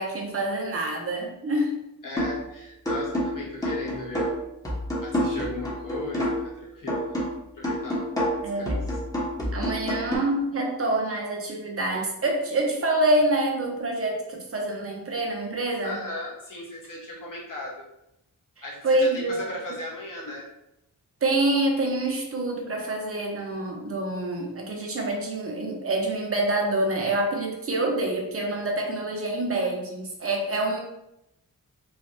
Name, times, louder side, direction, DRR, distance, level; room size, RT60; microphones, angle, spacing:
voice 1, 0.0-1.8 8.4-8.8 9.5-16.0 18.8-19.5 21.2-30.8, right 2 dB, 40° right, 0 dB, 0.8 m, -26 dB
voice 2, 2.0-4.3 5.0-7.2 7.5-8.8 15.8-17.8 18.6-20.5, left 2 dB, 60° left, -5 dB, 1.2 m, -37 dB
sound 1, 2.2-2.5 2.9-6.6 6.9-10.2, equal, 10° left, 0.9 m, -28 dB
3.2 x 2.4 x 2.6 m, 0.85 s
cardioid pair, 75°, 37 cm